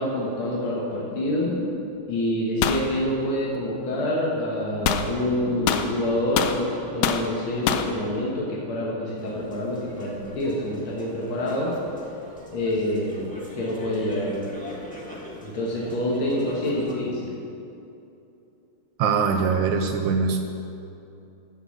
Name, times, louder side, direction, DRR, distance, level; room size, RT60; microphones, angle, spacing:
voice 1, 0.0-1.5 2.1-11.7 12.5-13.3 13.6-14.4 15.4-17.3, left 1 dB, 70° left, -5 dB, 2.1 m, -26 dB
sound 1, 1.5-2.3 5.5-6.4, left 3 dB, 55° left, 1.3 m, -37 dB
sound 2, 2.6-2.9 4.8-5.1 5.7-6.6 7.0-7.3 7.7-7.9, left 8 dB, 90° left, 0.9 m, -24 dB
sound 3, 9.2-16.9, left 1 dB, 5° left, 0.7 m, -42 dB
voice 2, 19.0-20.4, right 5 dB, 75° right, 5 dB, 1.2 m, -22 dB
12.0 x 4.6 x 7.0 m, 2.7 s
omnidirectional pair, 2.4 m